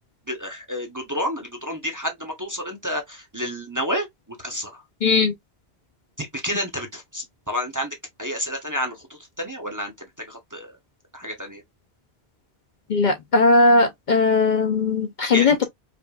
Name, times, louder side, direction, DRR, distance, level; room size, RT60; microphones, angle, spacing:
voice 1, 0.3-4.8 6.2-9.9 10.2-10.7 11.1-11.6 15.3-15.6, equal, 20° right, 0.8 m, -30 dB
voice 2, 5.0-5.3 12.9-15.6, left 3 dB, 50° left, 0.8 m, -18 dB
5.0 x 2.5 x 2.3 m
omnidirectional pair, 1.1 m